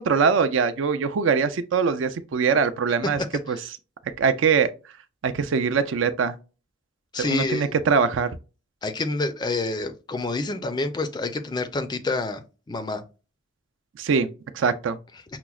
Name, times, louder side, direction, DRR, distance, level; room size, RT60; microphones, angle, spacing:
voice 1, 0.0-3.2 3.5-3.6 4.2-4.7 5.2-6.3 7.2-8.3 14.0-14.3 14.5-15.0, right 5 dB, 65° right, 0.4 m, -22 dB
voice 2, 7.1-7.7 8.8-13.0, left 3 dB, 20° left, 0.4 m, -28 dB
5.7 x 2.0 x 2.3 m
head